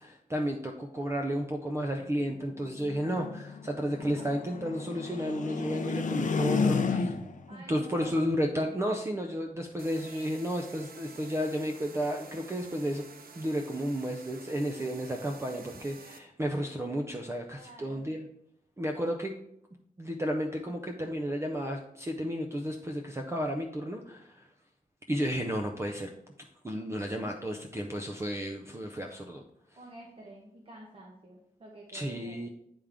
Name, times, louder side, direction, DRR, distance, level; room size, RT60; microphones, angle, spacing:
voice 1, 0.0-7.1 7.5-13.0 13.4-18.3 18.8-19.3 20.0-24.5 25.1-26.1 26.6-29.4 31.9-32.5, equal, 15° right, 2 dB, 0.4 m, -32 dB
sound 1, 2.0-7.5, left 4 dB, 55° left, 0.5 m, -32 dB
voice 2, 7.5-8.3 17.5-18.1 29.8-32.5, right 1 dB, 35° right, -2 dB, 0.9 m, -49 dB
sound 2, 9.8-16.2, right 4 dB, 70° right, 0.6 m, -50 dB
9.8 x 3.6 x 3.4 m, 0.76 s
wide cardioid pair, 155°, 16 cm